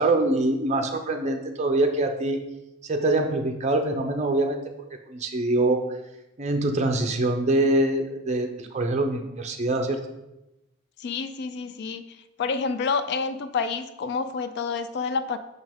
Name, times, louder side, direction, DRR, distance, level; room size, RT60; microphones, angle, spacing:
voice 1, 0.0-2.4 2.8-4.6 5.1-5.8 6.4-10.0, right 2 dB, 35° right, 4 dB, 0.6 m, -24 dB
voice 2, 11.0-12.0 12.4-15.4, left 5 dB, 55° left, 11 dB, 0.3 m, -28 dB
6.0 x 5.4 x 3.6 m, 0.96 s
head